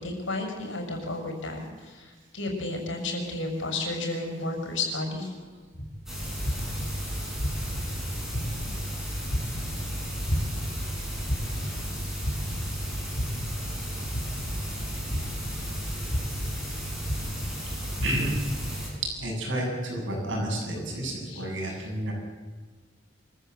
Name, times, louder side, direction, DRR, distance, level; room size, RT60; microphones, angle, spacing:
voice 1, 0.0-5.3 21.2-21.5, left 2 dB, 85° left, 3 dB, 6.2 m, -32 dB
sound 1, 5.7-5.9 6.4-6.9 7.4-7.8 8.3-8.7 9.3-9.7 10.3-10.7 11.3-11.7 12.2-12.7 13.2-13.6 14.1-14.5 15.1-15.5 16.1-16.5 17.0-17.5 18.0-18.4, equal, 55° left, 4.4 m, -30 dB
sound 2, 6.1-18.9, equal, ahead, 7.6 m, -34 dB
voice 2, 18.0-18.3 19.2-22.1, right 1 dB, 80° right, 0 dB, 7.9 m, -30 dB
25.5 x 14.5 x 7.9 m, 1.4 s
head